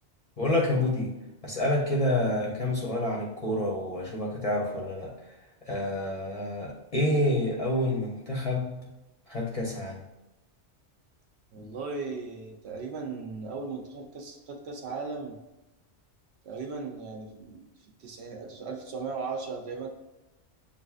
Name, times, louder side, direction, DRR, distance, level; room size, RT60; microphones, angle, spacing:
voice 1, 0.4-1.1 1.4-5.4 5.7-8.9 9.3-10.0 11.6-11.7, left 1 dB, 35° left, -3 dB, 0.7 m, -28 dB
voice 2, 11.5-15.4 16.4-17.7 18.0-19.9, right 4 dB, 70° right, 3 dB, 0.9 m, -37 dB
7.0 x 2.6 x 2.3 m, 0.99 s
omnidirectional pair, 1.2 m